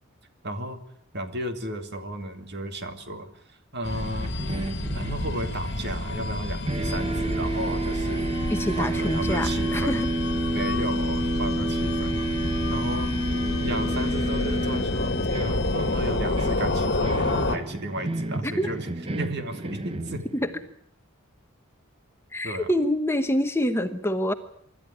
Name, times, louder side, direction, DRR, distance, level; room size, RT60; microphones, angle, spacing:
voice 1, 0.4-0.8 1.1-3.3 3.7-4.4 4.9-8.3 8.7-10.0 10.5-13.1 13.6-18.9 19.2-20.2 22.4-22.7, right 1 dB, 50° right, 7 dB, 2.3 m, -34 dB
sound 1, 3.8-17.6, left 2 dB, 50° left, 1.8 m, -29 dB
sound 2, 4.2-6.4 6.7-20.6, right 1 dB, 25° right, 1.0 m, -30 dB
voice 2, 8.5-10.1 18.4-18.7 20.3-20.5 22.3-24.3, left 1 dB, 10° left, 8 dB, 1.0 m, -26 dB
26.0 x 12.5 x 9.9 m, 0.68 s
head